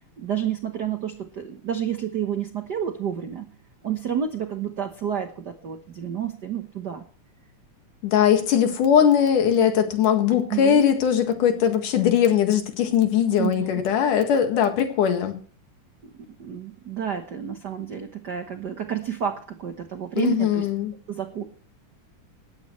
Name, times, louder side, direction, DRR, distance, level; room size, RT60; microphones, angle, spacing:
voice 1, 0.2-3.5 3.8-7.0 10.5-10.8 13.3-13.8 16.1-20.7 21.1-21.4, right 8 dB, 85° right, 7 dB, 0.9 m, -30 dB
voice 2, 8.0-15.4 20.2-20.9, left 8 dB, 85° left, 6 dB, 3.4 m, -20 dB
18.0 x 14.0 x 3.2 m, 0.41 s
omnidirectional pair, 3.6 m